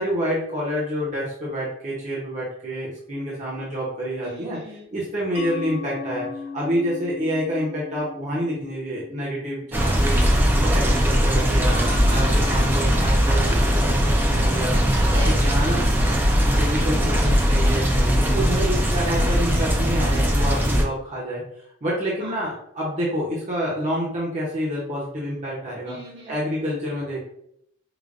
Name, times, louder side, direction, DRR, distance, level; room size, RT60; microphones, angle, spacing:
voice 1, 0.0-4.6 4.9-10.2 10.5-11.7 12.1-14.8 15.1-15.8 16.3-17.8 18.2-21.4 21.8-26.0 26.3-27.2, equal, 40° right, -6 dB, 0.8 m, -28 dB
voice 2, 4.2-4.9 11.7-12.5 14.9-15.3 18.3-18.9 22.2-22.5 25.9-26.5, right 1 dB, 75° right, -4 dB, 1.4 m, -37 dB
Mallet percussion, 5.3-10.7, left 5 dB, 70° left, 0.8 m, -38 dB
sound 1, 9.7-20.8, equal, 10° right, 0.4 m, -20 dB
4.9 x 2.2 x 2.5 m, 0.72 s
head